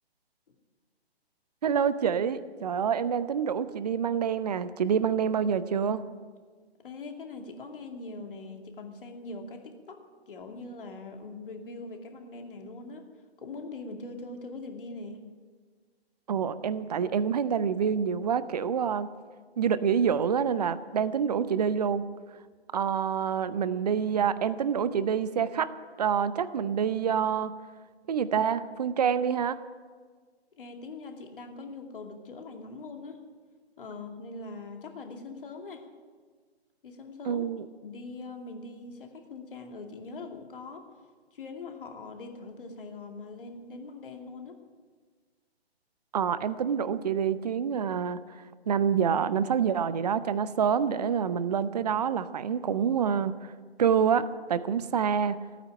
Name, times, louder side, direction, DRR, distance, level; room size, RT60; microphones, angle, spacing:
voice 1, 1.6-6.0 16.3-19.1 19.6-22.0 22.7-25.7 26.0-27.5 28.1-29.6 37.2-37.7 46.1-53.5 53.8-55.4, right 7 dB, 40° right, 15 dB, 0.7 m, -27 dB
voice 2, 6.8-13.1 13.4-15.2 30.6-33.2 33.8-35.8 36.8-37.4 37.8-40.9 41.3-44.6, left 3 dB, 55° left, 3 dB, 2.5 m, -42 dB
16.0 x 9.4 x 8.8 m, 1.5 s
figure-of-eight pair, 140°, 32 cm